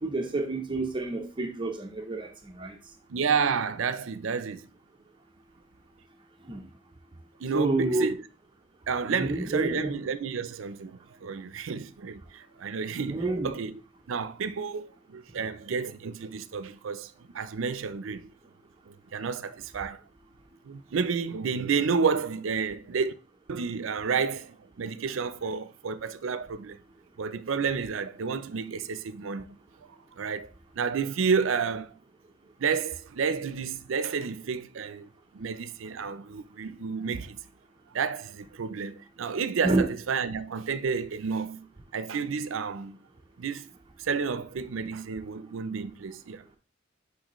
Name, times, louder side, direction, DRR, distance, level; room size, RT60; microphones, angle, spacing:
voice 1, 0.0-2.3 2.6-2.7 6.5-6.6 7.5-8.1 9.1-9.9 13.1-13.5 39.6-39.9, right 2 dB, 25° right, 0.6 m, -28 dB
voice 2, 3.1-4.7 7.4-8.2 8.9-13.8 14.1-18.3 18.9-20.0 20.6-23.1 23.5-26.8 27.2-29.6 30.2-32.0 32.6-35.1 35.3-37.4 37.9-41.7 41.9-43.0 43.4-43.7 44.0-46.4, right 5 dB, 80° right, 0.5 m, -31 dB
6.5 x 5.2 x 3.0 m
head